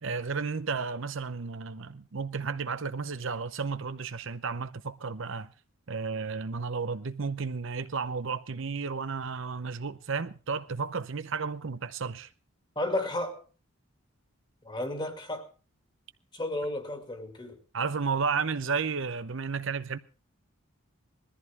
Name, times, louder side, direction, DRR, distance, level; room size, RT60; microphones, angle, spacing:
voice 1, 0.0-5.5 5.9-12.3 17.7-20.0, right 5 dB, 60° right, 0.7 m, -32 dB
voice 2, 12.8-13.4 14.6-15.5 16.3-17.6, left 1 dB, 20° left, 2.3 m, -33 dB
21.0 x 14.0 x 3.4 m
head